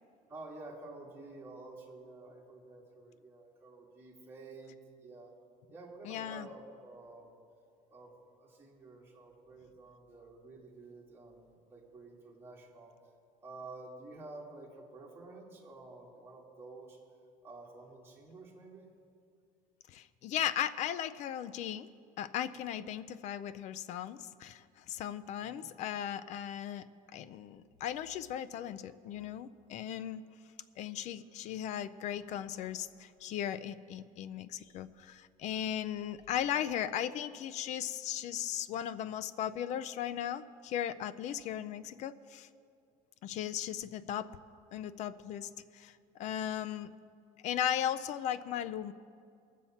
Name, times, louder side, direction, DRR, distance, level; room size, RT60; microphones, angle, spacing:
voice 1, 0.3-5.3 5.7-7.3 7.9-12.9 13.4-17.0 17.4-18.9 25.4-25.6 43.8-43.9, right 2 dB, 15° right, -4 dB, 1.9 m, -50 dB
voice 2, 6.0-6.5 19.9-21.9 22.2-26.9 27.1-30.2 30.8-42.5 43.2-44.3 44.7-45.9 46.2-46.9 47.4-48.9, left 10 dB, 45° left, 13 dB, 0.4 m, -37 dB
20.0 x 7.4 x 4.2 m, 2.4 s
cardioid pair, 165°, 16 cm